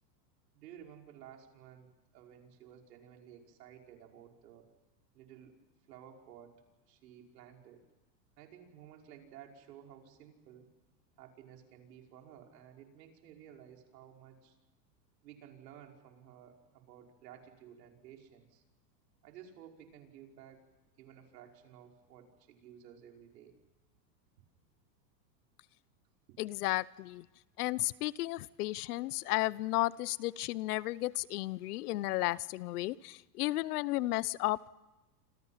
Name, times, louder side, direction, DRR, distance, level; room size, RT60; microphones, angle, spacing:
voice 1, 0.5-4.7 5.1-5.5 5.9-6.6 6.9-7.8 8.4-10.7 11.2-14.6 15.2-18.6 19.2-20.6 21.0-23.5, right 9 dB, 70° right, 2 dB, 5.7 m, -54 dB
voice 2, 26.4-27.3 27.6-34.7, left 18 dB, 60° left, 20 dB, 0.9 m, -33 dB
29.0 x 27.0 x 5.8 m, 1.0 s
supercardioid pair, 145°, 50 cm